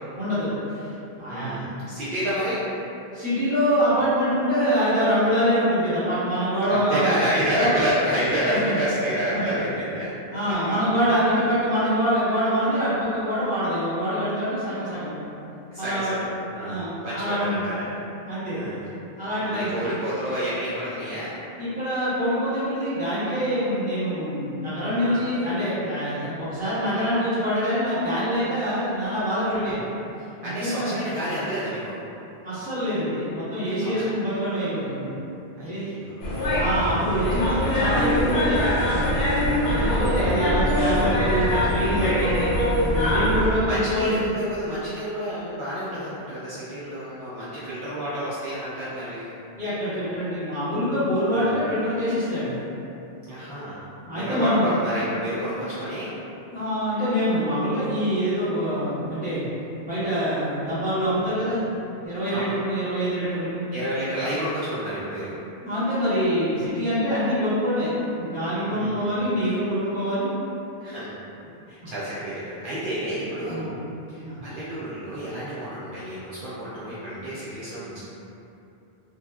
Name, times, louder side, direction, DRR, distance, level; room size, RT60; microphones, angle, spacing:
voice 1, 0.2-0.9 1.2-1.7 3.1-7.1 7.5-7.7 8.5-8.8 9.3-9.4 10.3-15.1 15.8-16.2 16.6-17.8 18.2-18.6 19.2-20.0 21.6-29.8 30.4-30.9 32.4-35.1 35.6-35.8 36.5-42.4 42.8-44.3 49.6-52.6 54.1-54.7 56.5-59.4 59.8-61.6 62.0-63.6 65.6-70.3 71.8-71.9 73.5-73.7 74.2-74.4, equal, 10° right, -15 dB, 1.0 m, -25 dB
voice 2, 1.3-2.6 6.7-10.1 10.5-10.9 15.7-17.9 18.5-18.8 19.4-21.3 25.0-25.2 29.5-29.7 30.4-32.0 33.8-34.1 35.6-37.1 39.4-39.9 43.6-49.3 51.2-51.6 53.3-53.8 54.1-56.1 61.3-61.4 62.3-62.5 63.7-65.3 68.7-69.1 69.4-69.6 70.8-71.2 71.4-73.7 74.1-78.0, equal, 65° right, -11 dB, 0.7 m, -30 dB
sound 1, 36.2-43.5, left 1 dB, 85° left, 0.9 m, -23 dB
2.8 x 2.3 x 2.3 m, 2.8 s
omnidirectional pair, 1.0 m